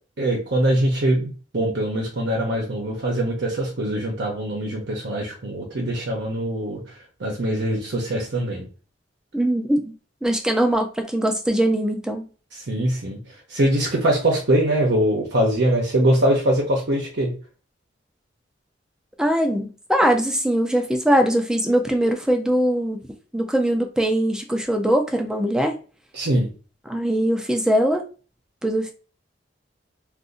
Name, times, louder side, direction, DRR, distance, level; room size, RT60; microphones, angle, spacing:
voice 1, 0.2-6.8 7.2-8.7 12.7-13.2 13.5-17.3 26.1-26.5, right 1 dB, 65° right, 0.8 m, -22 dB
voice 2, 9.3-9.9 10.2-12.2 19.2-23.0 23.3-25.8 26.9-28.0 28.6-28.9, right 1 dB, 5° right, 0.5 m, -21 dB
2.6 x 2.4 x 3.8 m
head